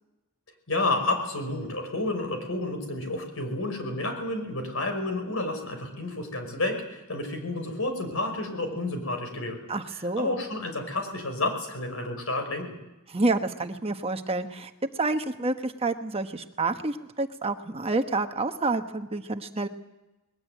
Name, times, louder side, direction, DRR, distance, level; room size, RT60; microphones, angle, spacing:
voice 1, 0.7-9.7 10.2-12.8, left 2 dB, 65° left, 6 dB, 5.6 m, -30 dB
voice 2, 9.7-10.4 13.1-14.7 15.0-19.7, right 3 dB, 25° right, 7 dB, 1.1 m, -28 dB
21.0 x 19.5 x 9.2 m, 1.0 s
head